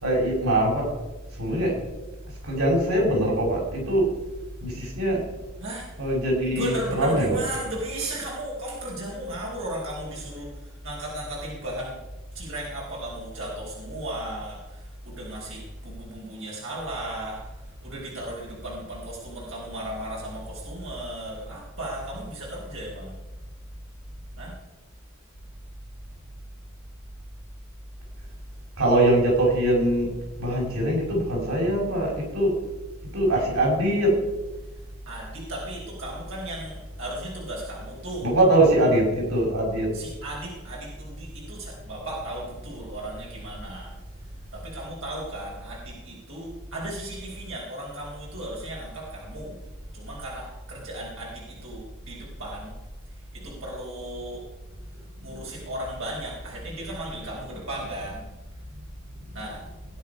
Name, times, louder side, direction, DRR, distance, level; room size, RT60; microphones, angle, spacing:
voice 1, 0.0-0.9 1.4-1.7 2.4-4.1 4.6-5.2 6.0-7.4 28.8-30.1 30.4-32.5 33.1-34.1 38.2-39.9, right 1 dB, 85° right, -2 dB, 5.4 m, -22 dB
voice 2, 6.5-12.0 12.3-17.4 17.8-23.1 24.4-24.5 35.1-38.3 39.9-43.9 44.5-49.6 49.9-52.7 53.3-54.4 55.2-58.2 59.3-59.6, right 1 dB, 60° right, -4 dB, 4.4 m, -36 dB
19.5 x 10.0 x 5.4 m, 1.1 s
head